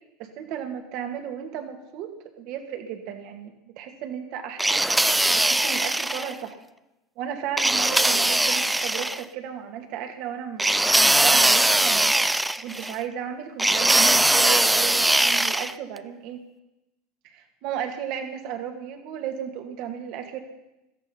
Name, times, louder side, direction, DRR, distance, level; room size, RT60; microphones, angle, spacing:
voice 1, 0.2-2.1 2.4-6.6 7.2-12.1 12.6-16.4 17.3-20.4, right 9 dB, 60° right, 6 dB, 2.1 m, -34 dB
sound 1, 4.6-6.3 7.6-9.2 10.6-12.9 13.6-15.7, right 1 dB, 5° right, 0.5 m, -21 dB
16.0 x 13.5 x 5.6 m, 0.95 s
hypercardioid pair, 85°, 0 cm